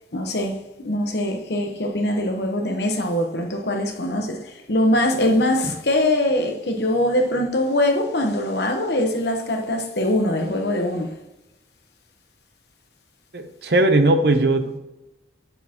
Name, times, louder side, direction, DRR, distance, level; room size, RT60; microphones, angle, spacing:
voice 1, 0.1-0.6 0.8-11.1, left 1 dB, 70° left, 1.1 m, -22 dB
voice 2, 13.3-14.8, right 2 dB, 65° right, 0.8 m, -18 dB
8.5 x 6.9 x 2.9 m
head